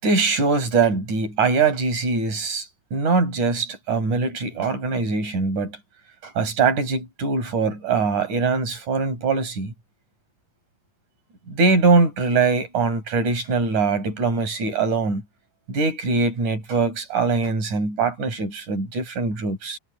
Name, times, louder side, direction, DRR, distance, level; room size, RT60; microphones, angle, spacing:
voice 1, 0.0-5.8 6.2-9.7 11.5-15.2 15.7-19.8, right 4 dB, 65° right, 7.6 m, -22 dB
omnidirectional pair, 3.7 m